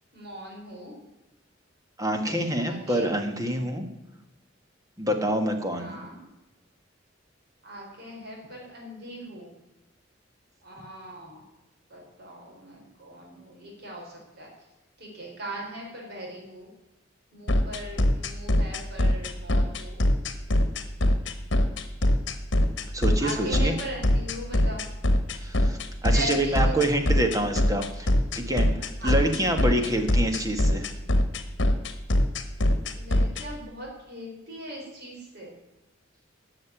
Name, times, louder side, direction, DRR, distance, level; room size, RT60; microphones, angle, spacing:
voice 1, 0.1-0.9 2.6-3.1 5.8-6.2 7.6-9.5 10.6-11.4 11.9-14.5 15.0-16.7 17.3-20.4 23.2-24.8 26.1-26.8 29.0-29.2 32.9-35.6, right 1 dB, 55° right, -1 dB, 4.4 m, -39 dB
voice 2, 2.0-3.8 5.0-6.0 22.9-23.7 25.4-28.1 28.3-30.9, right 1 dB, 20° right, 5 dB, 1.5 m, -27 dB
sound 1, 17.5-33.4, left 1 dB, 65° left, 1.3 m, -22 dB
12.0 x 6.6 x 8.9 m, 0.98 s
head